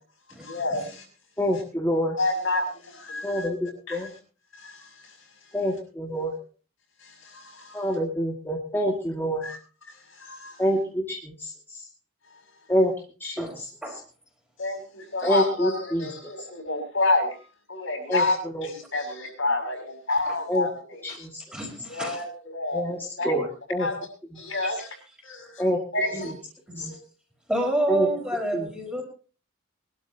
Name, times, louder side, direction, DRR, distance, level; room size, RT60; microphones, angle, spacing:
voice 1, 0.4-1.0 2.2-3.5 3.9-4.1 4.6-4.9 7.0-7.8 9.4-9.6 10.2-10.6 14.6-17.4 17.7-21.3 21.9-23.4 23.8-24.0 24.4-24.9 25.2-25.6 25.9-26.3 26.9-27.0, left 2 dB, 70° left, 3 dB, 6.3 m, -29 dB
voice 2, 1.4-2.2 3.2-4.1 5.5-6.3 7.7-9.4 10.6-11.5 12.7-12.9 13.2-13.6 15.2-16.1 18.1-18.2 18.5-18.7 20.5-20.7 21.0-21.3 22.7-23.0 23.2-23.9 25.6-25.8 26.8-26.9 27.9-28.1 28.5-28.7, equal, 10° left, -3 dB, 2.2 m, -26 dB
voice 3, 21.5-22.2 24.6-24.8 26.1-26.3 26.7-26.9 27.5-29.0, right 1 dB, 5° right, 0 dB, 4.7 m, -28 dB
23.0 x 12.5 x 2.9 m, 0.36 s
head